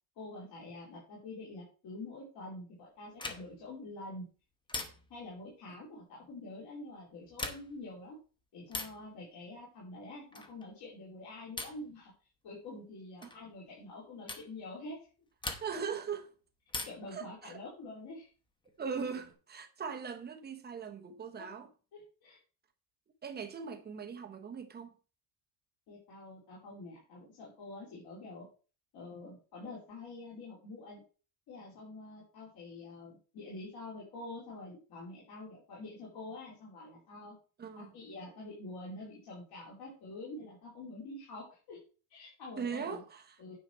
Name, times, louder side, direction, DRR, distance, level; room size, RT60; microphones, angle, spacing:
voice 1, 0.2-4.3 5.1-8.2 8.5-12.1 12.4-15.1 16.7-18.3 21.4-21.5 21.9-22.4 25.9-28.5 28.9-31.0 31.5-37.4 37.7-41.8 42.1-43.0 43.4-43.6, left 2 dB, 45° left, 3.5 m, -46 dB
sound 1, 3.2-3.7 4.7-5.3 7.2-7.9 8.7-9.1 10.3-10.7 11.6-11.9 13.2-13.4 14.3-14.5 15.4-16.0 16.7-17.2 18.6-19.3, left 2 dB, 10° left, 0.8 m, -42 dB
voice 2, 15.6-16.3 17.1-17.5 18.8-21.7 23.2-24.9 37.6-37.9 42.6-43.2, right 6 dB, 20° right, 0.9 m, -40 dB
9.1 x 5.8 x 4.6 m
cardioid pair, 175°, 49 cm